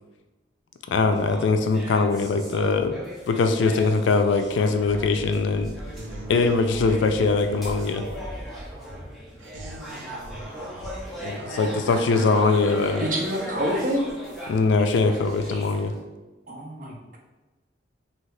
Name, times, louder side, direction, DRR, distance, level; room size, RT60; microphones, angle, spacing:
voice 1, 0.9-5.7 6.3-8.0 11.2-13.1 14.5-15.9, left 4 dB, 80° left, 8 dB, 0.3 m, -22 dB
sound 1, 1.1-16.0, equal, ahead, 0.6 m, -39 dB
sound 2, 4.8-12.0, equal, 15° left, 1.3 m, -41 dB
voice 2, 5.9-6.3 9.4-12.2, right 1 dB, 85° right, 0 dB, 0.7 m, -42 dB
voice 3, 13.0-14.2 16.5-17.2, equal, 45° right, -1 dB, 0.6 m, -27 dB
2.8 x 2.7 x 3.2 m, 1.2 s
head